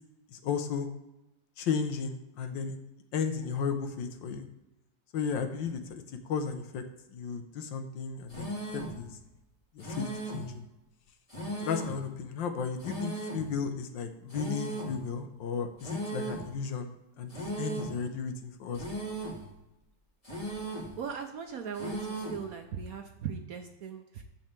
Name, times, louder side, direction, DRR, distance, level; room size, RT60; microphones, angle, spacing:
voice 1, 0.3-0.9 1.6-2.8 3.1-4.5 5.1-6.8 7.1-9.2 9.7-10.7 11.6-16.9 17.2-18.8, left 6 dB, 75° left, 7 dB, 1.6 m, -34 dB
sound 1, 8.3-9.0 9.8-10.5 11.3-12.0 12.8-13.5 14.3-15.0 15.8-16.5 17.3-18.0 18.7-19.5 20.2-21.0 21.7-22.5, right 1 dB, 15° left, 2.5 m, -37 dB
voice 2, 21.0-24.2, right 7 dB, 60° right, 5 dB, 1.0 m, -39 dB
10.5 x 4.4 x 7.4 m, 0.95 s
omnidirectional pair, 2.1 m